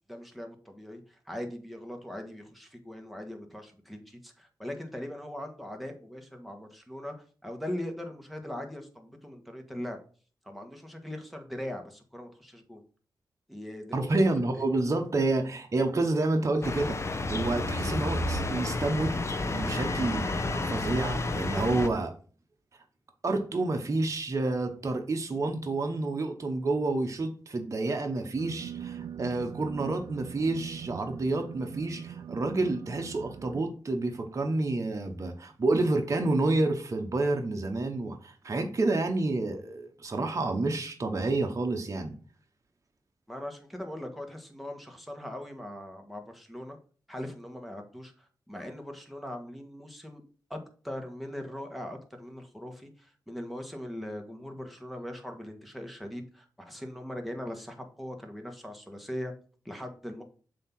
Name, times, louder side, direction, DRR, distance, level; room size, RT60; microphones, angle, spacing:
voice 1, 0.1-10.0 10.4-12.8 13.5-14.1 43.3-46.8 47.1-50.2 50.5-50.6 50.8-59.3 59.6-60.2, left 1 dB, ahead, 1.4 m, -40 dB
voice 2, 13.9-19.2 19.5-22.1 23.2-42.1, right 2 dB, 45° right, 0.9 m, -29 dB
sound 1, 16.6-21.9, left 2 dB, 35° left, 0.8 m, -31 dB
sound 2, 28.4-33.6, right 8 dB, 75° right, 0.3 m, -42 dB
7.4 x 2.8 x 6.0 m
cardioid pair, 75°, 8 cm